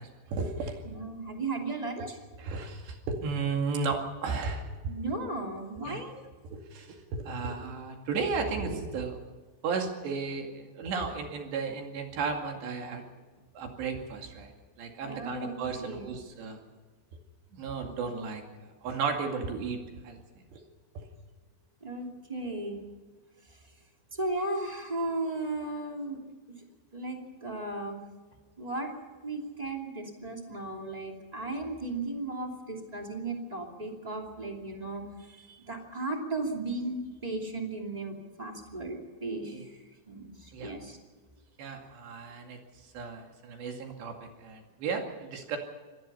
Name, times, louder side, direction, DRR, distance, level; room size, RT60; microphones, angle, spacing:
voice 1, 0.0-0.8 1.9-2.1 2.4-4.7 5.8-6.0 6.4-9.2 9.6-13.1 13.6-14.5 14.8-16.6 17.5-18.4 18.8-19.8 20.0-20.6 21.0-21.1 24.5-24.6 39.5-39.7 40.5-40.7 41.6-42.6 42.9-45.6, right 4 dB, 60° right, 3 dB, 4.2 m, -34 dB
voice 2, 0.8-2.2 4.9-6.2 15.0-16.1 21.8-22.8 24.1-26.2 26.9-28.0 28.6-28.9 29.2-39.8 40.1-41.0, right 2 dB, 20° right, 1 dB, 1.0 m, -35 dB
25.5 x 19.0 x 5.6 m, 1.4 s
omnidirectional pair, 5.8 m